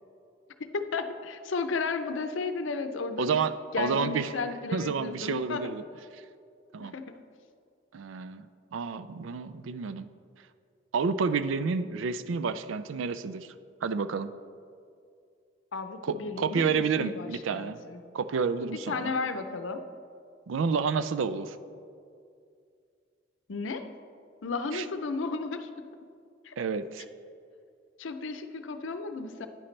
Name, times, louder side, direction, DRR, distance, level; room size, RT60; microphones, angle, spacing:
voice 1, 0.6-3.5 3.7-5.7 6.8-7.1 15.7-18.0 18.9-19.8 23.5-23.9 24.4-25.7 26.4-26.5 28.0-29.5, left 4 dB, 85° left, 8 dB, 0.6 m, -33 dB
voice 2, 3.2-4.3 4.7-5.8 6.7-7.0 7.9-10.1 10.9-13.5 13.8-14.3 16.0-17.8 18.1-19.1 20.5-21.6 24.7-24.9 26.6-27.0, right 5 dB, 90° right, 12 dB, 0.4 m, -30 dB
9.9 x 9.8 x 3.2 m, 2.4 s
head